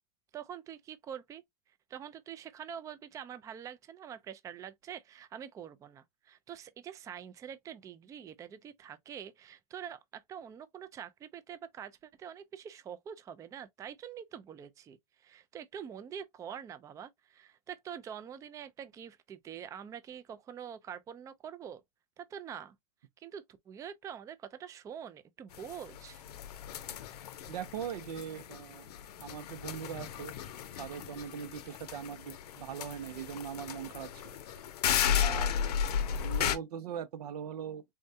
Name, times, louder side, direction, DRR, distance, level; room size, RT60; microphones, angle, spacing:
voice 1, 0.3-1.4 1.9-21.8 22.2-22.7 23.2-26.2, right 8 dB, 15° right, 0.3 m, -45 dB
sound 1, 25.5-36.6, left 8 dB, 85° left, 0.6 m, -35 dB
voice 2, 27.5-28.9 29.2-30.3 30.8-34.4 35.2-35.6 36.0-37.8, right 8 dB, 85° right, 0.6 m, -41 dB
3.6 x 2.1 x 2.5 m
supercardioid pair, 125°, 20 cm